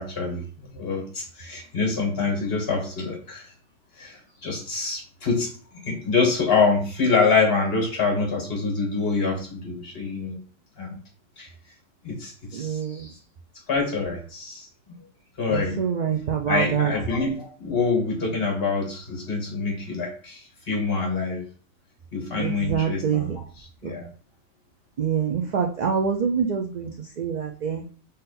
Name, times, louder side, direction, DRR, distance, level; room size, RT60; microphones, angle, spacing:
voice 1, 0.0-3.5 4.0-5.5 5.8-10.3 10.8-11.0 11.4-11.5 12.0-13.1 13.7-14.7 15.4-15.8 16.5-21.4 22.1-24.1, left 4 dB, 55° left, 0 dB, 1.7 m, -26 dB
voice 2, 12.5-13.1 15.5-16.9 22.4-23.4 23.8-23.9 25.0-27.8, right 7 dB, 65° right, 2 dB, 0.4 m, -26 dB
3.9 x 2.5 x 4.1 m, 0.41 s
omnidirectional pair, 1.2 m